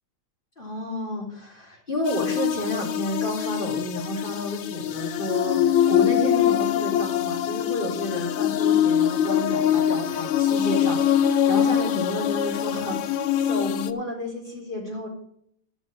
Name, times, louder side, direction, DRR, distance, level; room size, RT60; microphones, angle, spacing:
voice 1, 0.6-15.1, left 1 dB, 20° left, -2 dB, 3.7 m, -31 dB
sound 1, 2.1-13.9, left 10 dB, 90° left, 1.6 m, -24 dB
sound 2, 5.4-10.2, left 9 dB, 75° left, 1.5 m, -27 dB
11.5 x 6.3 x 7.6 m, 0.67 s
omnidirectional pair, 2.4 m